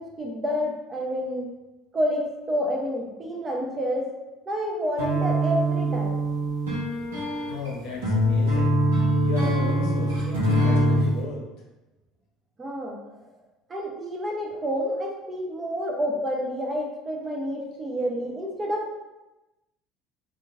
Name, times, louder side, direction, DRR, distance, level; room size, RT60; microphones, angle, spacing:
voice 1, 0.0-1.5 1.9-4.1 4.5-6.2 12.6-13.0 13.7-19.0, equal, 30° right, 0 dB, 0.6 m, -29 dB
sound 1, 5.0-11.1, right 1 dB, 85° right, 0.9 m, -23 dB
voice 2, 7.4-8.7 9.2-11.4, left 3 dB, 65° left, -1 dB, 0.7 m, -35 dB
2.9 x 2.5 x 2.4 m, 1.0 s
hypercardioid pair, 70°, 0 cm